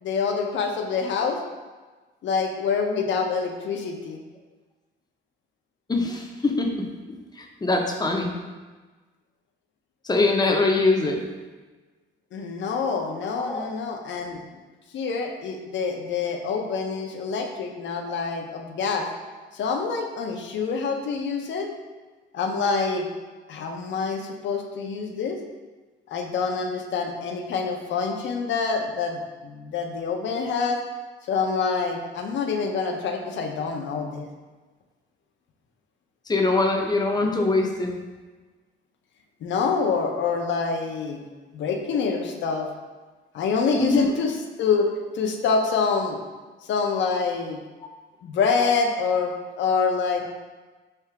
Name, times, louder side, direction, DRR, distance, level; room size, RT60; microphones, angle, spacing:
voice 1, 0.0-1.4 2.2-4.2 12.3-14.4 14.9-19.1 19.5-21.7 22.3-23.1 23.5-25.4 26.1-30.8 31.3-34.3 39.4-41.2 41.5-42.7 43.3-44.9 45.1-46.2 46.6-47.6 48.2-50.3, left 5 dB, 70° left, 3 dB, 0.6 m, -26 dB
voice 2, 5.9-6.7 7.6-8.3 10.1-11.2 13.4-13.7 36.3-37.9 43.7-44.1, left 3 dB, 20° left, 2 dB, 0.6 m, -22 dB
3.4 x 2.8 x 4.6 m, 1.3 s
cardioid pair, 90°, 20 cm